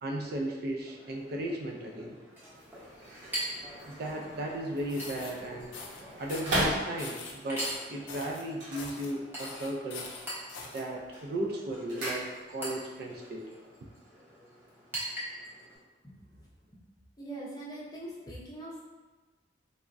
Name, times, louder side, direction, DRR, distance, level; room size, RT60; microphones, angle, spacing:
voice 1, 0.0-2.2 3.9-5.7 6.2-10.0 10.7-13.5, right 1 dB, 55° right, 0 dB, 0.3 m, -35 dB
Chink clink, 0.8-15.8, right 1 dB, 10° right, 0.7 m, -44 dB
sound 1, 2.4-7.4 8.5-9.6 9.9-10.4 10.8-12.8 13.1-13.2, right 1 dB, 80° right, 0.8 m, -37 dB
sound 2, 4.8-5.3 5.7-6.0 6.3-6.6 7.0-8.4 8.8-9.1 9.4-10.8, left 4 dB, 85° left, 0.4 m, -43 dB
voice 2, 16.0-16.8 17.2-18.8, right 1 dB, 20° left, -5 dB, 0.5 m, -43 dB
3.3 x 2.1 x 2.4 m, 1.3 s
head